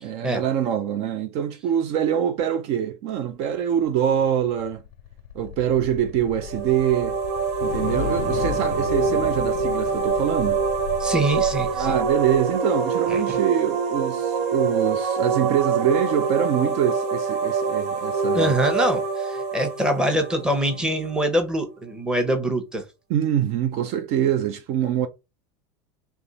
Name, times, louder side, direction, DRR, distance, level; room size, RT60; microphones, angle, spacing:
voice 1, 0.0-4.8 5.3-7.2 7.6-10.6 11.8-18.5 23.1-25.1, right 9 dB, 50° right, 0.5 m, -24 dB
sound 1, 4.2-12.5, left 12 dB, 55° left, 0.4 m, -35 dB
sound 2, 6.4-21.1, right 5 dB, 85° right, 0.8 m, -25 dB
voice 2, 11.0-12.0 13.1-13.4 18.3-22.8, right 1 dB, 5° right, 0.9 m, -24 dB
3.5 x 3.0 x 4.0 m
supercardioid pair, 145°, 14 cm